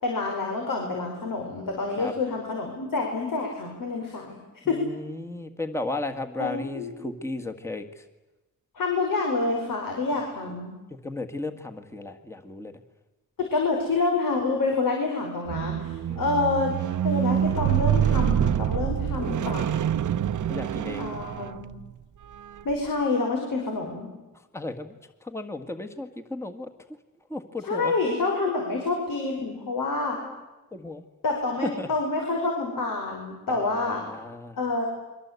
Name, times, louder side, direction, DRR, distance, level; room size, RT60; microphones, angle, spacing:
voice 1, 0.0-4.4 4.7-4.8 6.4-6.9 8.8-10.8 13.4-16.7 17.0-19.8 21.0-21.8 22.7-24.1 27.6-30.2 31.2-34.0 34.6-34.9, left 3 dB, 75° left, 1 dB, 5.4 m, -27 dB
voice 2, 4.6-7.8 11.0-12.7 16.0-16.3 20.5-21.0 24.5-24.9 25.2-26.7 27.3-27.9 30.2-30.3 30.7-31.0 31.6-31.9 33.5-34.6, left 2 dB, 10° left, 6 dB, 1.7 m, -34 dB
Squeak, 15.5-21.8 22.6-22.7, right 10 dB, 65° right, 0.8 m, -26 dB
29.5 x 23.5 x 8.3 m, 1.1 s
wide cardioid pair, 135°, 33 cm